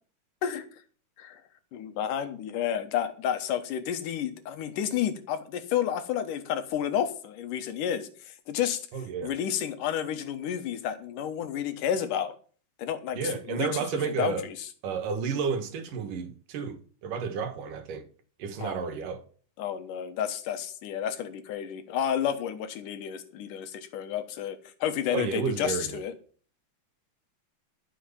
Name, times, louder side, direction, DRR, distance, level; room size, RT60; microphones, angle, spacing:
voice 1, 1.7-8.8 9.2-12.3 12.8-14.6 18.6-18.9 19.6-26.1, left 9 dB, 85° left, 2.8 m, -31 dB
voice 2, 8.9-9.3 13.2-14.4 14.8-16.8 17.0-18.1 18.4-19.2 25.1-26.0, right 5 dB, 90° right, 3.2 m, -31 dB
12.5 x 6.4 x 7.2 m
omnidirectional pair, 3.6 m